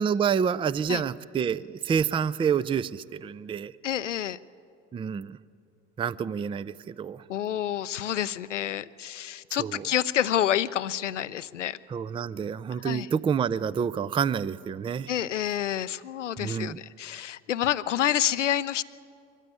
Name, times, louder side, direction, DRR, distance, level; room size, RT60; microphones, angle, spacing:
voice 1, 0.0-3.7 4.9-5.4 6.0-7.2 9.5-9.9 11.9-15.1 16.4-16.8, right 7 dB, 15° right, 19 dB, 0.4 m, -28 dB
voice 2, 3.8-4.4 7.3-11.8 12.8-13.1 15.1-18.8, left 11 dB, 85° left, 17 dB, 0.6 m, -28 dB
22.5 x 15.5 x 9.5 m, 2.4 s
figure-of-eight pair, 65°, 35 cm